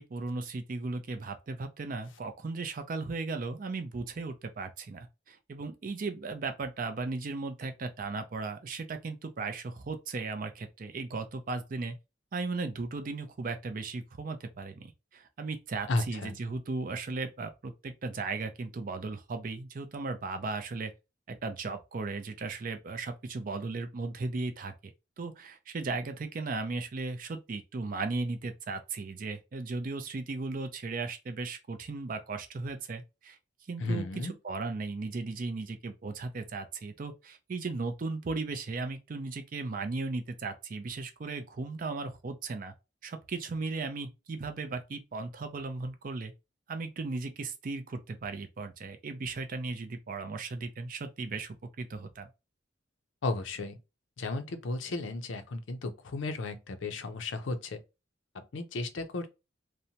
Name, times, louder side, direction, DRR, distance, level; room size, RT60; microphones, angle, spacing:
voice 1, 0.0-12.0 12.3-20.9 21.3-24.7 25.2-33.4 33.7-42.7 43.0-46.3 46.7-52.3, right 3 dB, 45° right, 0.4 m, -36 dB
voice 2, 15.9-16.4 33.8-34.3 53.2-53.8 54.2-57.8 58.3-59.3, left 2 dB, 70° left, 0.5 m, -34 dB
2.7 x 2.1 x 2.8 m
head